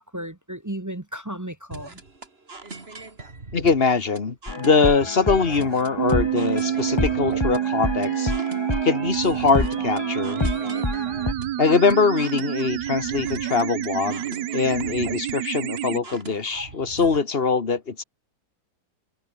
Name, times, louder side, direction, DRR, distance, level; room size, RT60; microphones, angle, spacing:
voice 1, 0.0-2.0, right 1 dB, 15° right, 0.8 m, -34 dB
sound 1, 1.7-17.2, right 3 dB, 35° right, 3.0 m, -40 dB
voice 2, 3.5-8.3 8.8-10.5 11.6-18.0, left 4 dB, 35° left, 1.8 m, -22 dB
sound 2, 4.5-11.3, left 3 dB, 20° left, 1.1 m, -29 dB
sound 3, 6.0-16.0, right 13 dB, 75° right, 1.4 m, -28 dB
omnidirectional pair, 1.9 m